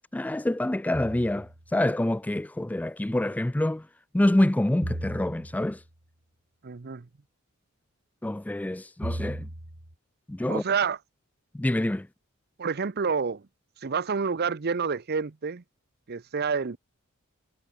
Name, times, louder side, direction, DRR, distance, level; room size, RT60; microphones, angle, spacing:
voice 1, 0.1-3.9 4.1-5.8 8.2-9.5 10.3-10.6 11.5-12.1, left 1 dB, 5° left, 0.3 m, -26 dB
sound 1, 0.9-1.7 4.8-5.9 9.0-9.9, right 1 dB, 85° right, 3.7 m, -36 dB
voice 2, 6.6-7.1 10.5-11.0 12.6-13.4 13.8-15.6 16.1-16.8, right 5 dB, 50° right, 0.6 m, -28 dB
head